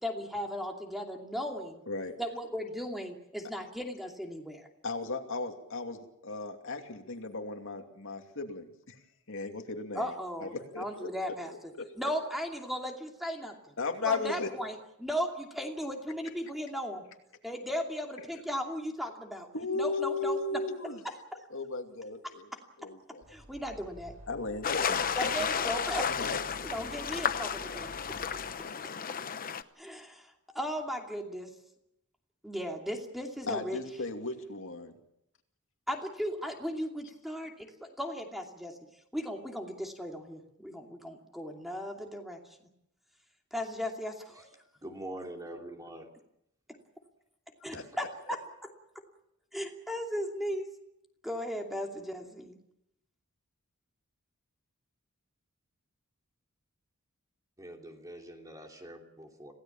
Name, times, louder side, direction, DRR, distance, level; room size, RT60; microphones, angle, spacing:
voice 1, 0.0-1.8 2.2-4.7 9.9-13.7 14.0-17.0 17.4-19.5 19.7-20.6 21.0-21.1 23.3-24.1 25.2-26.3 26.6-27.9 29.8-31.5 32.4-33.8 35.9-38.8 39.1-42.7 43.5-44.4 47.6-48.4 49.5-50.7 51.2-52.6, equal, ahead, 2 dB, 2.7 m, -36 dB
voice 2, 4.8-9.0 9.3-10.1 10.4-11.1 11.5-11.8 13.8-14.5 19.5-21.0 21.5-22.5 22.8-23.2 24.3-25.3 26.2-26.4 33.5-34.9 47.7-47.8, left 3 dB, 65° left, 4 dB, 2.7 m, -36 dB
Vehicle horn car horn honking / Traffic noise roadway noise, 23.2-28.5, right 2 dB, 90° right, 7.6 m, -50 dB
sound 1, 24.6-29.6, left 7 dB, 40° left, 0.9 m, -32 dB
voice 3, 44.8-46.1 47.7-47.9 57.6-59.5, right 1 dB, 15° right, 2 dB, 3.0 m, -44 dB
27.0 x 17.0 x 7.3 m, 0.80 s
head